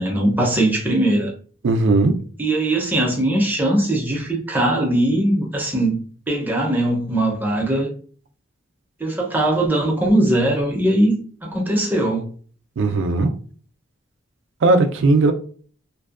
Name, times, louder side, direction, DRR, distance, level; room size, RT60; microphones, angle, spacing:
voice 1, 0.0-1.3 2.4-6.0 6.3-7.9 9.0-11.1 11.4-12.3, right 1 dB, 10° right, 0.6 m, -20 dB
voice 2, 1.6-2.2 12.8-13.3 14.6-15.3, right 3 dB, 60° right, 0.4 m, -17 dB
2.6 x 2.2 x 2.4 m
head